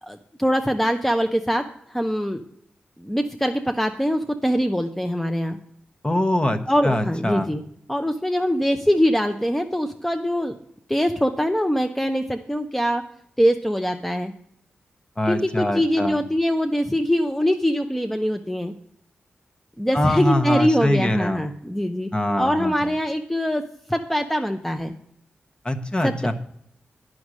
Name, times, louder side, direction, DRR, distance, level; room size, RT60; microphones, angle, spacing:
voice 1, 0.0-2.4 3.0-5.6 6.7-7.6 7.9-10.6 10.9-13.0 13.4-14.3 15.3-18.7 19.8-22.1 22.4-24.9 26.0-26.3, equal, 5° left, 5 dB, 0.7 m, -23 dB
voice 2, 6.0-7.5 15.2-16.2 19.9-21.4 22.1-22.9 25.6-26.3, left 1 dB, 25° left, 6 dB, 1.1 m, -23 dB
9.4 x 6.4 x 6.2 m, 0.72 s
cardioid pair, 45°, 4 cm